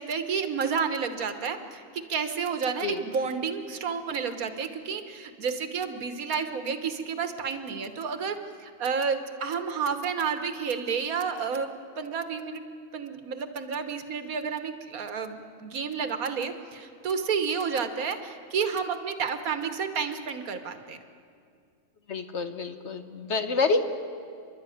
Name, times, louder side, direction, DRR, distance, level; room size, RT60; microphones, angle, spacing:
voice 1, 0.0-11.7 12.0-12.6 12.9-21.0, right 6 dB, 85° right, 9 dB, 1.7 m, -30 dB
voice 2, 22.1-23.8, left 4 dB, 55° left, 8 dB, 1.4 m, -27 dB
29.5 x 11.5 x 9.2 m, 2.3 s
omnidirectional pair, 1.5 m